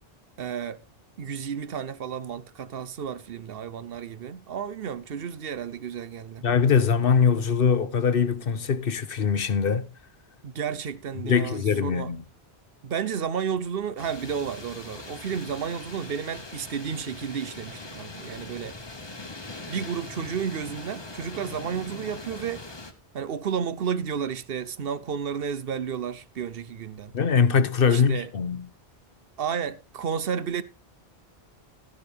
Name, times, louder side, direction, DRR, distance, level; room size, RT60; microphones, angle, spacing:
voice 1, 0.4-0.8 1.2-6.5 10.4-12.1 12.8-18.8 19.7-22.7 23.1-27.1 27.8-28.3 29.4-30.6, right 7 dB, 65° right, 0.9 m, -32 dB
voice 2, 6.4-9.9 11.2-12.2 27.1-28.7, left 6 dB, 60° left, 1.0 m, -22 dB
sound 1, 14.0-22.9, left 2 dB, 25° left, 1.1 m, -41 dB
13.5 x 11.0 x 3.4 m
omnidirectional pair, 1.1 m